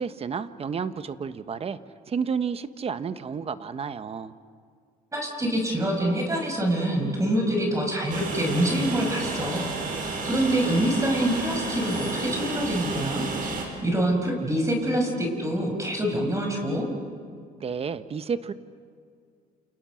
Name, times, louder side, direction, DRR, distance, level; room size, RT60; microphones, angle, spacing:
voice 1, 0.0-1.8 2.1-4.3 17.6-18.5, right 6 dB, 35° right, 12 dB, 1.2 m, -31 dB
voice 2, 5.1-13.2 13.8-16.8, right 1 dB, 20° right, 1 dB, 6.2 m, -26 dB
Train, 8.1-13.6, right 3 dB, 55° right, 6.2 m, -31 dB
29.0 x 29.0 x 6.4 m, 2.2 s
cardioid pair, 110°, 17 cm